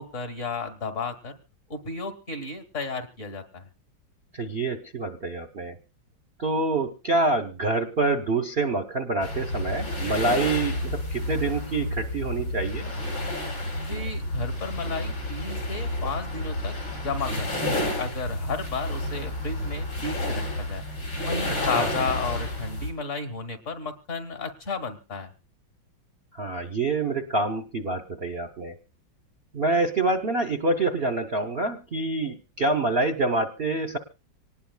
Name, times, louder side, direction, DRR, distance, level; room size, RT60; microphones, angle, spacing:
voice 1, 0.0-1.4 1.7-3.7 13.8-17.5 17.8-20.8 21.2-25.3, left 4 dB, 40° left, 8 dB, 1.7 m, -33 dB
voice 2, 4.3-5.8 6.4-12.9 21.7-21.9 26.3-28.8 29.5-34.0, right 2 dB, 45° right, 8 dB, 0.8 m, -26 dB
sound 1, 9.2-22.9, left 1 dB, 70° left, 8.7 m, -30 dB
25.5 x 19.0 x 2.3 m, 0.31 s
omnidirectional pair, 2.1 m